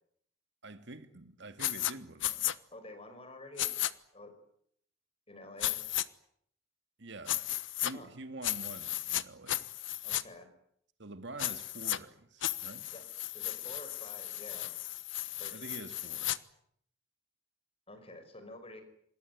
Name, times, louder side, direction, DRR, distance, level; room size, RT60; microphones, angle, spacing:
voice 1, 0.6-2.5 7.0-7.5 7.8-9.7 11.0-12.9 15.5-16.4, right 2 dB, 60° right, 2.1 m, -47 dB
sound 1, 1.6-1.9 2.2-2.5 3.6-3.9 5.6-6.0 7.3-7.9 8.4-9.2 9.5-10.2 11.4-12.0 12.4-16.4, left 14 dB, 65° left, 1.1 m, -34 dB
voice 2, 2.7-3.8 4.1-4.3 5.3-5.8 7.9-8.1 10.0-10.5 12.9-13.0 13.3-14.8 15.4-15.7 17.9-18.8, left 2 dB, 30° left, 5.5 m, -49 dB
26.5 x 21.0 x 9.4 m
head